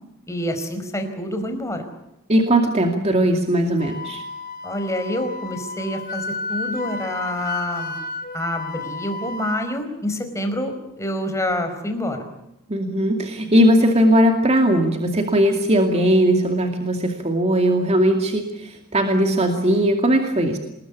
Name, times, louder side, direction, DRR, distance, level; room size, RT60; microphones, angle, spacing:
voice 1, 0.3-1.8 4.6-7.9 8.3-12.2, left 1 dB, 15° left, 6 dB, 4.7 m, -27 dB
voice 2, 2.3-4.2 12.7-20.6, equal, 30° right, 4 dB, 2.4 m, -19 dB
Wind instrument woodwind instrument, 3.8-9.6, left 3 dB, 40° left, 2.2 m, -32 dB
27.5 x 21.0 x 8.5 m, 0.89 s
head